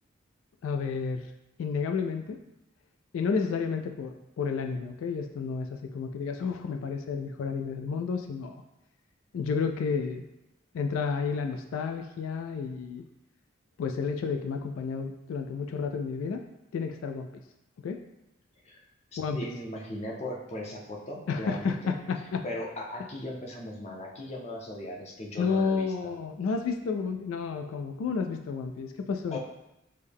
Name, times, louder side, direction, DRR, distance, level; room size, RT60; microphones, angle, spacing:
voice 1, 0.6-1.2 1.6-2.4 3.1-8.6 9.3-10.2 10.7-13.0 13.8-16.4 16.7-17.3 17.8-18.0 19.2-19.5 21.3-22.4 25.4-29.4, left 5 dB, 80° left, 5 dB, 0.3 m, -31 dB
voice 2, 19.1-22.0 22.4-26.1 29.3-29.4, left 1 dB, 30° left, -1 dB, 0.6 m, -38 dB
6.4 x 2.1 x 3.5 m, 0.91 s
head